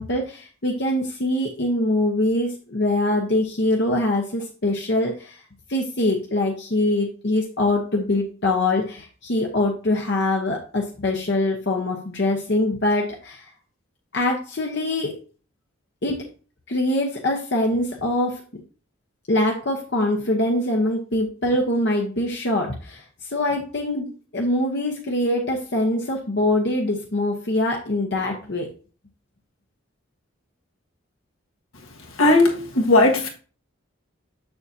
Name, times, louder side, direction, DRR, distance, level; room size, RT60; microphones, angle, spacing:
voice 1, 0.0-5.4 5.7-13.4 14.1-15.1 16.0-16.2 16.7-18.4 19.3-28.7, left 1 dB, 55° left, 0.9 m, -23 dB
voice 2, 32.2-33.3, left 2 dB, 85° left, 1.6 m, -17 dB
6.9 x 6.8 x 2.7 m
head